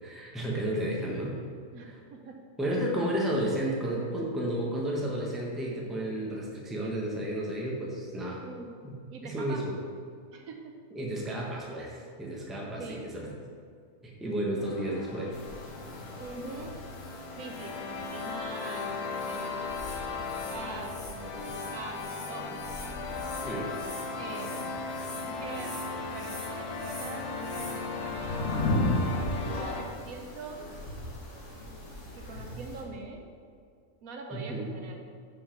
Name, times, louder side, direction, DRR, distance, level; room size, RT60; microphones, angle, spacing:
voice 1, 0.0-1.4 1.9-2.0 2.6-8.4 8.8-8.9 9.2-9.7 10.9-13.3 14.0-15.4 23.4-23.7 34.3-34.8, right 1 dB, ahead, -3 dB, 0.9 m, -32 dB
voice 2, 1.7-2.5 2.9-3.3 8.4-8.7 9.1-9.7 10.3-10.7 12.8-13.1 16.2-16.8 17.4-19.7 20.2-22.6 24.2-24.8 25.1-25.8 26.1-30.7 32.1-33.2 34.0-35.1, right 3 dB, 70° right, 3 dB, 1.1 m, -43 dB
sound 1, 14.6-29.8, left 4 dB, 90° left, 1.3 m, -37 dB
sound 2, 15.3-32.8, left 1 dB, 55° left, 1.8 m, -37 dB
5.5 x 5.5 x 5.8 m, 2.2 s
omnidirectional pair, 1.6 m